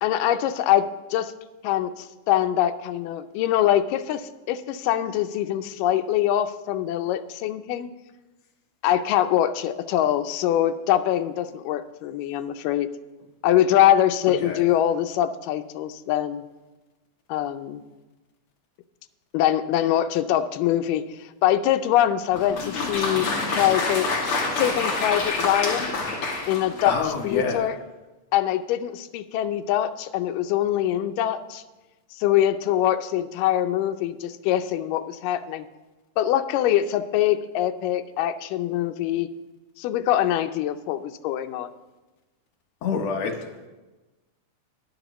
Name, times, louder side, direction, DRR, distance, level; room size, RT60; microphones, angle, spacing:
voice 1, 0.0-1.3 1.6-7.9 8.8-12.9 13.4-16.4 17.3-17.8 19.3-23.3 23.6-25.9 26.5-27.8 28.3-31.6 32.1-35.7 36.2-39.3 39.8-41.7, left 11 dB, 85° left, 9 dB, 2.2 m, -23 dB
Applause, 22.3-27.2, left 3 dB, 50° left, 2.3 m, -27 dB
voice 2, 26.8-27.7 42.8-43.4, left 5 dB, 65° left, 2 dB, 1.9 m, -26 dB
13.5 x 10.5 x 3.0 m, 1.2 s
omnidirectional pair, 3.8 m